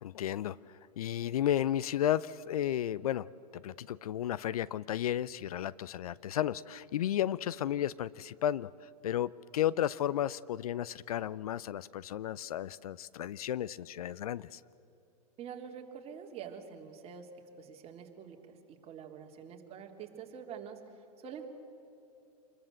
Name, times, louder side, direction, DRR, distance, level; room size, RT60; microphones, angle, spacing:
voice 1, 0.0-0.6 1.0-3.3 3.5-14.6, left 11 dB, 65° left, 19 dB, 0.6 m, -33 dB
voice 2, 15.4-17.3 17.6-20.8 21.2-21.5, right 7 dB, 30° right, 3 dB, 2.9 m, -46 dB
27.5 x 21.5 x 7.9 m, 2.8 s
figure-of-eight pair, 105°, 21 cm